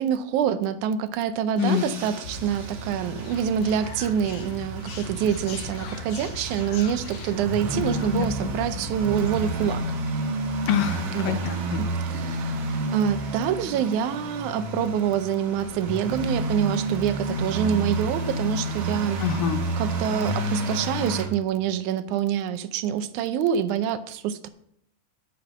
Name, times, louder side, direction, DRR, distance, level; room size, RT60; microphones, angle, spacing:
voice 1, 0.0-9.8 11.1-11.4 11.8-19.2 19.8-24.5, right 8 dB, 75° right, 10 dB, 1.9 m, -26 dB
voice 2, 1.6-1.9 8.1-8.3 10.7-11.8 19.2-19.6, left 9 dB, 80° left, 9 dB, 2.4 m, -25 dB
sound 1, 1.6-21.3, right 1 dB, 55° right, 1.9 m, -31 dB
sound 2, 2.2-9.8, equal, 60° left, 1.6 m, -37 dB
10.0 x 5.1 x 7.9 m, 0.69 s
omnidirectional pair, 3.9 m